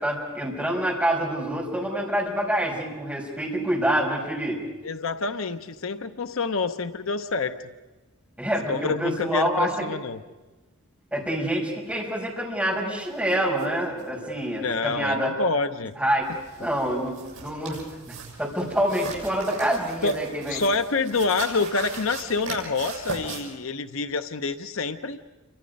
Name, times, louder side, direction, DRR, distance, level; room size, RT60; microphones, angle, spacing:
voice 1, 0.0-4.6 8.4-9.7 11.1-15.3 16.0-16.3 16.6-17.8 18.1-20.6, right 1 dB, 5° right, -2 dB, 5.2 m, -26 dB
voice 2, 4.8-7.6 8.7-10.2 14.6-15.9 20.0-20.1 20.5-25.2, left 4 dB, 70° left, 10 dB, 0.7 m, -27 dB
sound 1, 13.3-13.4 13.6-13.7 14.0-14.1 16.2-23.4, right 4 dB, 75° right, 7.2 m, -38 dB
28.5 x 24.5 x 5.3 m, 1.2 s
head